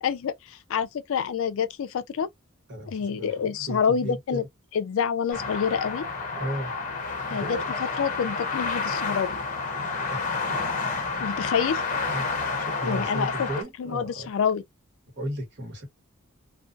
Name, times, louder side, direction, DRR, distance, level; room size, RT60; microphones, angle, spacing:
voice 1, 0.0-2.3 2.9-4.4 4.7-6.1 7.3-7.6 8.0-9.4 11.2-11.8 12.8-13.5 13.8-14.6, left 7 dB, 60° left, 0.4 m, -27 dB
voice 2, 2.7-4.4 6.3-6.7 7.3-7.6 10.1-10.6 12.1-12.3 12.6-14.3 15.1-15.9, right 1 dB, 50° right, 1.3 m, -35 dB
sound 1, 5.3-13.6, left 4 dB, 35° left, 0.7 m, -30 dB
2.3 x 2.2 x 2.5 m
head